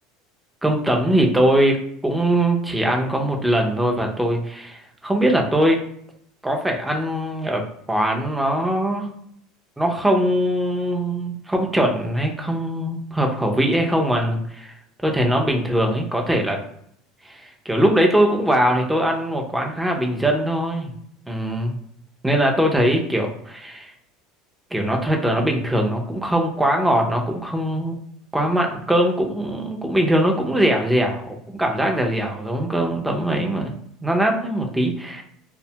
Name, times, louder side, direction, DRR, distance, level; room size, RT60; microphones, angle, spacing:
voice 1, 0.6-5.8 6.4-9.1 9.8-14.7 15.0-16.6 17.2-20.9 21.3-21.8 22.2-23.9 24.7-27.9 28.3-35.2, right 1 dB, 5° right, 1 dB, 0.5 m, -21 dB
2.6 x 2.1 x 2.7 m, 0.71 s
supercardioid pair, 135°, 0 cm